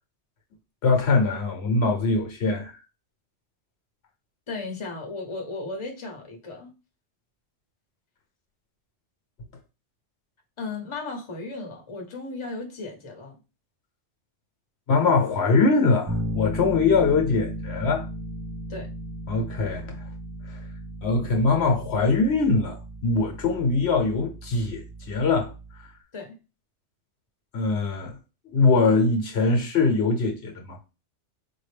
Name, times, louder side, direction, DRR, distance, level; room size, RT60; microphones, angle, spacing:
voice 1, 0.8-2.8 14.9-18.1 19.3-20.0 20.5-20.6 21.0-25.5 25.8-25.9 27.5-28.1 28.5-30.8, left 3 dB, 65° left, 1.1 m, -22 dB
voice 2, 4.5-6.7 10.6-13.3 18.7-18.9 26.1-26.4, left 3 dB, 30° left, 0.9 m, -35 dB
Bass guitar, 16.1-25.9, right 1 dB, 30° right, 0.4 m, -36 dB
4.4 x 2.5 x 3.3 m
omnidirectional pair, 1.2 m